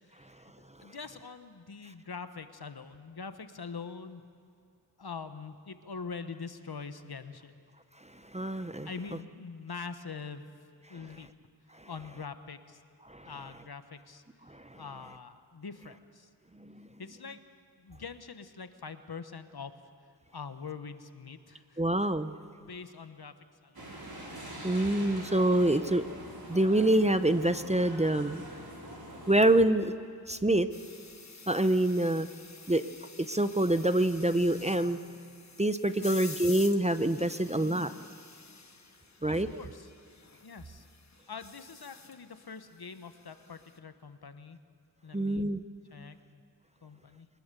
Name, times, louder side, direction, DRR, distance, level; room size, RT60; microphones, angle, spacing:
voice 1, 0.1-0.5 0.8-4.2 5.0-7.6 8.8-10.5 10.9-11.3 11.8-12.8 13.2-14.2 14.7-16.3 17.0-17.4 17.8-19.7 20.3-21.8 22.6-23.4 23.6-23.8 36.0-36.2 39.3-39.9 40.4-40.8 41.3-44.6 45.0-45.5 45.9-46.4 46.8-47.3, left 5 dB, 65° left, 10 dB, 1.1 m, -44 dB
voice 2, 8.3-8.9 13.1-13.3 14.5-14.8 16.6-16.9 21.8-22.3 24.6-26.0 26.5-28.4 29.3-29.9 30.3-30.7 31.5-32.3 32.7-32.8 33.3-35.0 35.6-38.0 39.2-39.5 45.1-45.6, right 1 dB, 15° right, 11 dB, 0.7 m, -26 dB
sound 1, 23.7-29.6, right 1 dB, 60° right, 5.1 m, -44 dB
sound 2, 30.7-43.8, left 4 dB, 45° left, 1.2 m, -50 dB
23.5 x 20.0 x 6.8 m, 2.5 s
wide cardioid pair, 65°, 40 cm